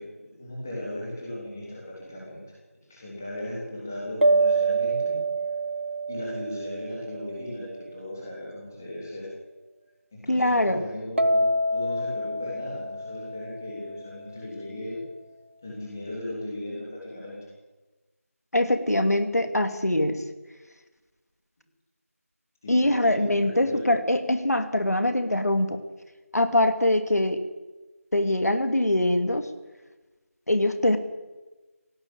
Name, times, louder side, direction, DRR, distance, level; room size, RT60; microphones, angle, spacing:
voice 1, 0.0-2.4 2.9-5.2 6.1-9.3 10.1-15.0 15.6-17.4 22.6-23.8, left 1 dB, 10° left, -5 dB, 3.4 m, -37 dB
sound 1, 4.2-7.7 11.2-14.2, right 2 dB, 50° right, 1.4 m, -26 dB
voice 2, 10.3-10.8 18.5-20.2 22.7-25.8 26.3-27.4 28.1-29.5 30.5-31.0, left 1 dB, 90° left, 8 dB, 2.7 m, -23 dB
18.5 x 16.5 x 8.9 m, 1.2 s
figure-of-eight pair, 180°, 8 cm